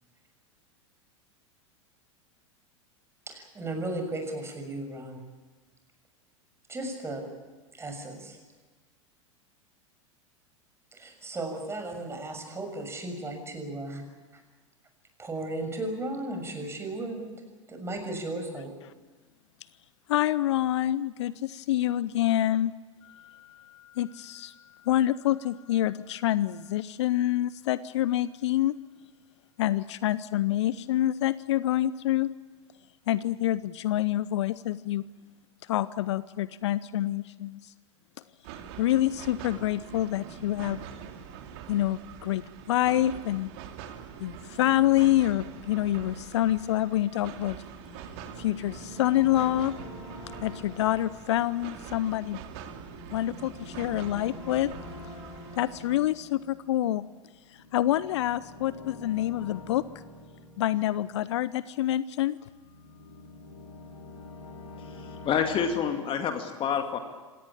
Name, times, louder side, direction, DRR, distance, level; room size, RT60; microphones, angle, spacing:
voice 1, 3.3-5.2 6.7-7.2 7.7-8.4 10.9-14.0 14.3-14.4 15.2-17.3 17.7-18.7, right 2 dB, 15° right, 5 dB, 6.7 m, -35 dB
voice 2, 20.1-22.7 23.0-28.7 29.6-32.3 33.1-35.0 35.7-37.7 38.8-40.8 41.7-43.5 44.2-47.6 48.4-49.7 50.4-52.4 53.1-54.7 55.5-57.0 57.7-59.8 60.6-62.4, left 13 dB, 60° left, 18 dB, 0.7 m, -27 dB
sound 1, 38.4-56.0, right 8 dB, 50° right, 2.9 m, -44 dB
sound 2, 47.6-61.9 62.4-65.9, left 2 dB, 80° left, 4.3 m, -47 dB
voice 3, 64.8-67.0, left 7 dB, 30° left, 6 dB, 2.4 m, -28 dB
26.5 x 18.0 x 8.8 m, 1.4 s
figure-of-eight pair, 90°, 16 cm